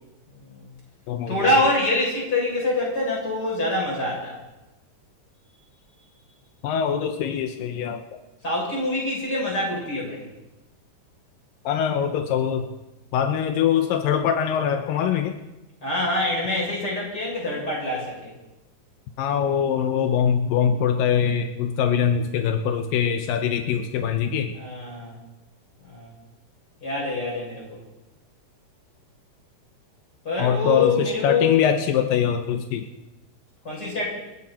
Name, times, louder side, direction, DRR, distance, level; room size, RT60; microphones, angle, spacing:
voice 1, 0.4-0.7 1.3-4.4 8.4-10.3 15.8-18.3 24.5-25.2 25.8-26.1 26.8-27.8 30.2-31.6 33.6-34.1, left 2 dB, 25° left, -4 dB, 7.6 m, -25 dB
voice 2, 6.6-8.0 11.7-12.7 13.1-15.4 19.2-24.5 30.4-32.9, left 8 dB, 85° left, 6 dB, 2.6 m, -23 dB
28.5 x 10.5 x 4.3 m, 0.99 s
omnidirectional pair, 4.0 m